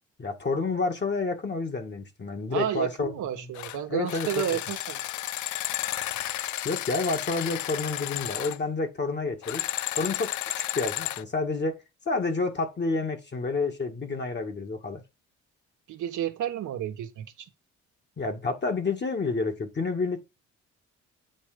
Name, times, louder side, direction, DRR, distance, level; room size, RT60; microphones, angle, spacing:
voice 1, 0.2-3.5 3.9-4.4 6.6-9.6 10.0-11.8 12.1-15.0 18.2-20.2, left 3 dB, 35° left, 2.1 m, -29 dB
voice 2, 2.5-5.0 15.9-17.3, right 11 dB, 80° right, 1.3 m, -31 dB
sound 1, 3.5-3.8 4.1-8.6 9.4-11.2, left 14 dB, 75° left, 0.5 m, -32 dB
8.7 x 3.3 x 5.1 m
cardioid pair, 90°, 30 cm